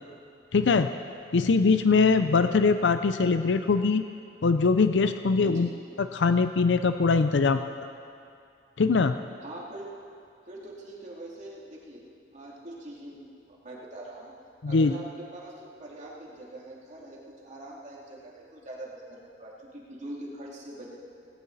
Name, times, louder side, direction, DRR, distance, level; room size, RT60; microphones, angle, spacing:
voice 1, 0.5-0.9 1.3-4.1 4.4-5.7 6.0-7.6 8.8-9.1 14.6-15.0, left 4 dB, 90° left, 9 dB, 0.5 m, -22 dB
voice 2, 5.4-5.7 9.4-10.0 10.4-12.0 12.3-14.3 14.6-20.9, right 1 dB, 45° right, -4 dB, 2.8 m, -43 dB
18.0 x 17.0 x 4.1 m, 2.4 s
head